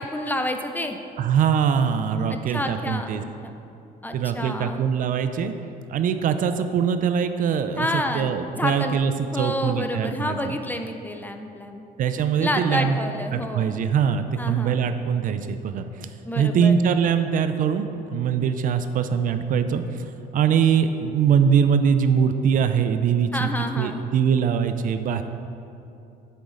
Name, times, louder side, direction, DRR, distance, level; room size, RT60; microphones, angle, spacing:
voice 1, 0.0-1.0 2.3-3.5 4.0-4.8 7.8-9.0 9.3-11.8 12.4-13.7 14.4-14.8 16.3-16.8 23.3-24.0, left 1 dB, 10° left, 5 dB, 0.4 m, -29 dB
voice 2, 1.2-3.2 4.1-5.5 5.9-10.6 12.0-13.0 13.3-16.1 16.4-17.9 18.1-23.5 23.8-25.2, right 7 dB, 50° right, 9 dB, 0.4 m, -22 dB
8.2 x 6.3 x 3.8 m, 2.8 s
cardioid pair, 110°, 17 cm